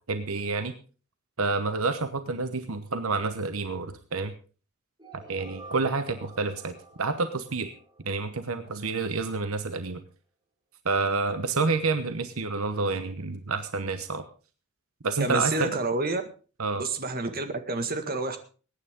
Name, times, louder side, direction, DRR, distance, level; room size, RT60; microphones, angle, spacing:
voice 1, 0.1-0.7 1.4-4.3 5.1-7.7 8.0-10.0 10.8-14.2 15.0-15.7 16.6-16.8, right 3 dB, 75° right, 10 dB, 1.1 m, -29 dB
sound 1, 5.0-8.9, right 2 dB, 20° right, 3.3 m, -50 dB
voice 2, 15.2-16.2 16.8-18.4, right 2 dB, 45° right, 7 dB, 1.8 m, -29 dB
21.5 x 9.8 x 3.7 m, 0.36 s
head